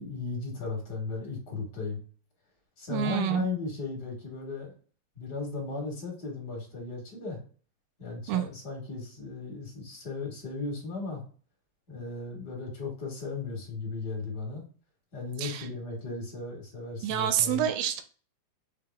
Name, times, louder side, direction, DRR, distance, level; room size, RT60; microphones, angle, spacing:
voice 1, 0.0-2.0 2.8-4.7 5.1-7.4 8.0-11.2 11.9-14.7 15.1-17.7, left 4 dB, 45° left, 0 dB, 1.6 m, -36 dB
voice 2, 2.9-3.5 8.3-8.4 15.4-15.7 17.0-18.0, right 11 dB, 90° right, 8 dB, 2.1 m, -28 dB
5.7 x 3.4 x 2.3 m, 0.41 s
omnidirectional pair, 3.4 m